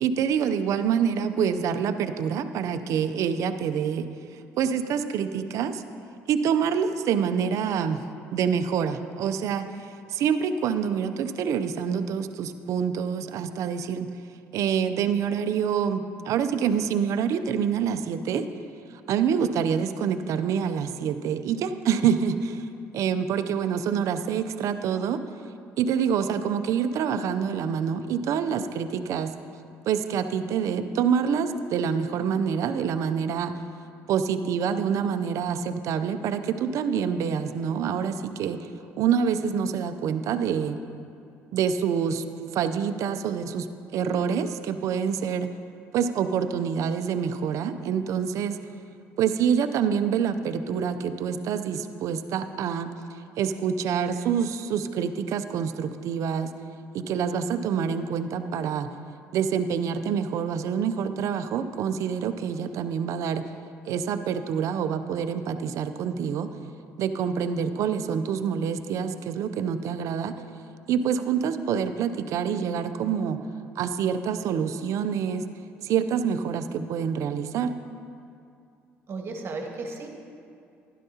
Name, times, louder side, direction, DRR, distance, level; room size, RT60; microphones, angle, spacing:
voice 1, 0.0-4.1 4.6-5.8 6.3-8.0 8.3-14.1 14.5-18.4 19.1-22.7 22.9-25.2 25.8-29.3 29.9-33.5 34.1-38.7 39.0-40.8 41.5-42.2 42.5-43.7 43.9-45.5 45.9-48.6 49.2-52.9 53.4-56.5 56.9-58.9 59.3-63.4 63.9-66.5 67.0-70.3 70.9-73.4 73.8-75.4 75.8-77.7, right 7 dB, 65° right, 9 dB, 0.5 m, -26 dB
voice 2, 79.1-80.1, right 3 dB, 45° right, 2 dB, 1.4 m, -34 dB
12.0 x 11.0 x 2.8 m, 2.4 s
supercardioid pair, 75°, 6 cm